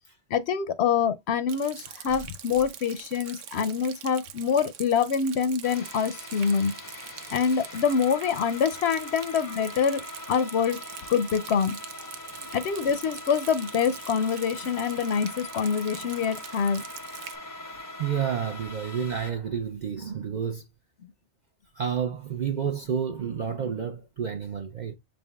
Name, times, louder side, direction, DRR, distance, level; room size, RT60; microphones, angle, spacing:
voice 1, 0.3-10.0 10.3-10.8 11.1-11.8 12.5-16.8, left 6 dB, 70° left, 0.8 m, -25 dB
Rain, 1.5-17.4, right 9 dB, 85° right, 1.0 m, -44 dB
sound 1, 5.6-19.3, left 2 dB, 25° left, 0.4 m, -42 dB
voice 2, 18.0-20.6 21.7-24.9, right 7 dB, 55° right, 0.5 m, -30 dB
6.4 x 3.5 x 2.2 m
omnidirectional pair, 1.2 m